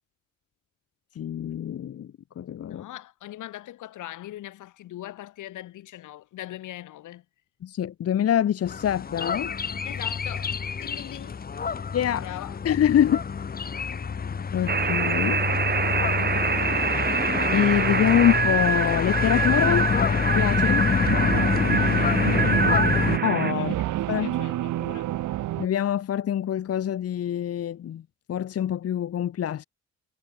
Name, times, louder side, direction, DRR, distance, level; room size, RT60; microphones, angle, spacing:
voice 1, 1.2-2.1 2.4-2.8 7.6-9.5 11.9-12.3 12.6-13.2 14.5-15.4 17.5-19.9 20.3-20.9 23.2-23.8 24.1-24.3 25.6-28.0 28.3-29.6, left 10 dB, 55° left, 1.0 m, -25 dB
voice 2, 2.7-7.2 9.8-11.4 12.2-12.6 22.0-22.5 23.6-25.1, left 14 dB, 80° left, 3.0 m, -41 dB
sound 1, 8.7-23.2, left 6 dB, 30° left, 1.0 m, -26 dB
sound 2, 14.7-23.5, right 6 dB, 35° right, 1.7 m, -26 dB
sound 3, 20.8-25.7, right 14 dB, 80° right, 1.5 m, -29 dB
cardioid pair, 90°, 30 cm